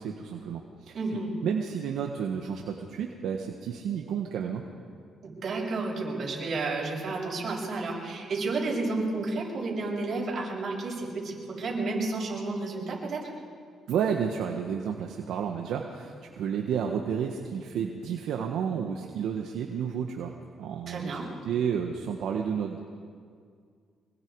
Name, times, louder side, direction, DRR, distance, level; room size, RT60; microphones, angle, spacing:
voice 1, 0.0-4.6 13.9-20.3 20.6-22.8, right 7 dB, 80° right, 2 dB, 1.4 m, -31 dB
voice 2, 0.9-1.3 5.2-13.2 20.9-21.2, right 3 dB, 55° right, -3 dB, 7.5 m, -31 dB
25.0 x 22.0 x 4.8 m, 2.1 s
cardioid pair, 90°, 0 cm